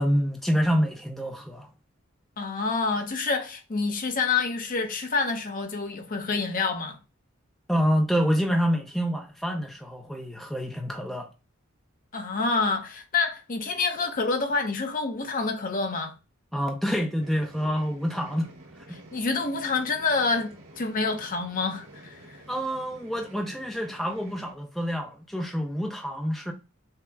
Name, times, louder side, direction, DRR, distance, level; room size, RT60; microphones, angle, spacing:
voice 1, 0.0-1.7 7.7-11.3 16.5-19.0 22.5-26.5, equal, ahead, 0.5 m, -27 dB
voice 2, 2.4-7.0 12.1-16.1 19.1-22.4, left 4 dB, 40° left, 0.7 m, -27 dB
sound 1, 17.2-24.5, right 1 dB, 85° right, 2.0 m, -49 dB
5.6 x 2.0 x 3.4 m
head